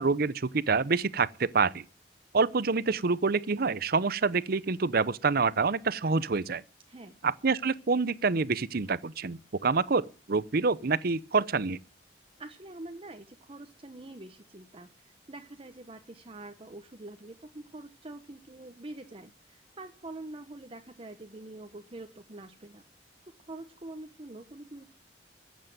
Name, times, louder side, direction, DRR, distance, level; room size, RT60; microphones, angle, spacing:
voice 1, 0.0-1.8 2.3-6.6 7.2-11.8, right 4 dB, 60° right, 0.7 m, -27 dB
voice 2, 6.9-7.2 12.4-22.8 23.4-24.9, right 2 dB, 30° right, 1.1 m, -45 dB
14.5 x 8.4 x 9.2 m
head